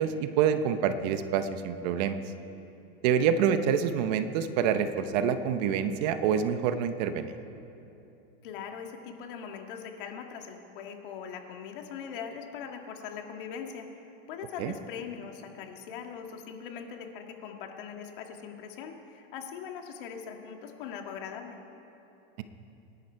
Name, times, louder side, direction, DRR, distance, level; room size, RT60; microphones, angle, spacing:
voice 1, 0.0-2.2 3.0-7.4 14.6-14.7, right 8 dB, 45° right, 10 dB, 0.8 m, -27 dB
voice 2, 8.4-13.9 14.3-21.6, left 7 dB, 60° left, 3 dB, 1.9 m, -41 dB
27.0 x 11.0 x 4.6 m, 2.8 s
supercardioid pair, 160°, 30 cm